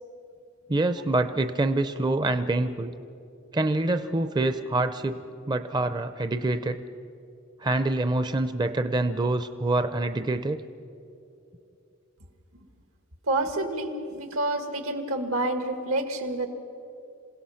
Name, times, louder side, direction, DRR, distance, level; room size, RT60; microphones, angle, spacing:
voice 1, 0.7-2.9 3.5-5.2 5.5-6.8 7.6-10.6, right 2 dB, 20° right, 10 dB, 0.5 m, -26 dB
voice 2, 13.3-16.5, right 2 dB, 85° right, 7 dB, 1.8 m, -28 dB
27.0 x 17.0 x 5.7 m, 2.6 s
head